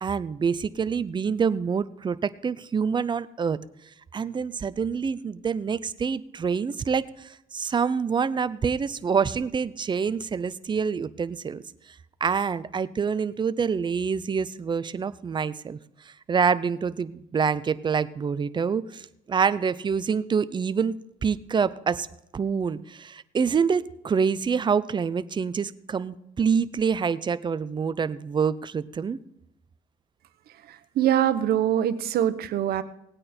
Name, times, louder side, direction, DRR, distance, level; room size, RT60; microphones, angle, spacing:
voice 1, 0.0-3.6 4.1-7.0 7.5-11.6 12.2-15.8 16.3-19.0 19.3-21.0 21.2-22.1 22.3-29.2, right 6 dB, 25° right, 16 dB, 0.6 m, -26 dB
voice 2, 31.0-32.8, right 11 dB, 70° right, 12 dB, 1.0 m, -23 dB
18.5 x 8.9 x 4.4 m, 0.81 s
cardioid pair, 110°, 17 cm